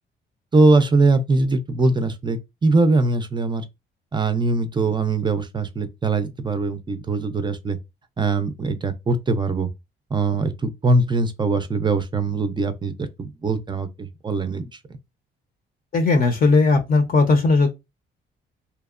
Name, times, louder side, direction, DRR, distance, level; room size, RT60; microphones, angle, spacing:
voice 1, 0.5-3.6 4.1-7.8 8.2-9.7 10.1-14.8, right 3 dB, 25° right, 0.4 m, -21 dB
voice 2, 15.9-17.7, left 3 dB, 45° left, 0.6 m, -17 dB
2.8 x 2.0 x 2.4 m
cardioid pair, 90°, 20 cm